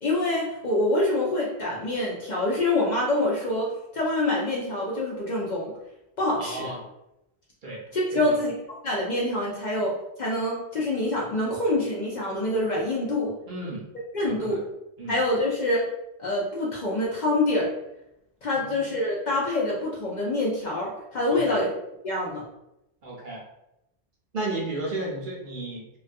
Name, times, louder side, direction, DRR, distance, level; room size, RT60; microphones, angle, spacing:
voice 1, 0.0-3.7 3.9-5.7 6.2-6.7 7.9-8.5 8.8-13.3 14.1-14.6 15.1-15.9 16.2-17.7 18.4-21.7 22.0-22.4, left 1 dB, 55° left, -4 dB, 0.5 m, -26 dB
voice 2, 6.4-6.8 7.6-7.8 8.1-8.4 13.5-13.8 14.2-14.6 15.0-15.2 18.5-18.8 21.3-21.6 23.0-23.4 24.3-25.8, right 2 dB, 55° right, -3 dB, 0.7 m, -33 dB
2.3 x 2.2 x 2.5 m, 0.87 s
omnidirectional pair, 1.1 m